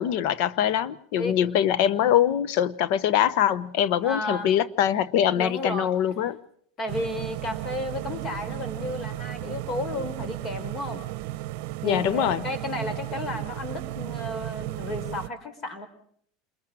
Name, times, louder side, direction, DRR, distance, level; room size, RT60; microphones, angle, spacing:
voice 1, 0.0-6.4 11.8-12.4, left 10 dB, 65° left, 1.1 m, -23 dB
voice 2, 4.0-4.5 5.3-5.9 6.8-11.0 11.8-15.9, left 1 dB, 35° left, 4.8 m, -33 dB
sound 1, 6.9-15.3, right 17 dB, 70° right, 0.8 m, -34 dB
28.0 x 21.5 x 4.8 m
supercardioid pair, 110°, 0 cm